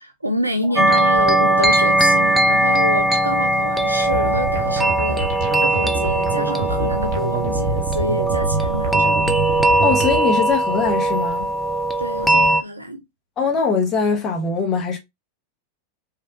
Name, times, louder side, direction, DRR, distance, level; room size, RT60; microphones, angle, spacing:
voice 1, 0.0-5.3 5.6-9.3 12.0-13.0, equal, 85° right, 0.4 m, -27 dB
sound 1, 0.8-12.6, right 1 dB, ahead, 0.4 m, -19 dB
sound 2, 4.1-10.2, right 3 dB, 45° right, 0.8 m, -26 dB
voice 2, 9.8-11.5 13.4-15.0, left 5 dB, 30° left, 1.4 m, -21 dB
3.3 x 2.7 x 2.8 m
figure-of-eight pair, 90°, 0 cm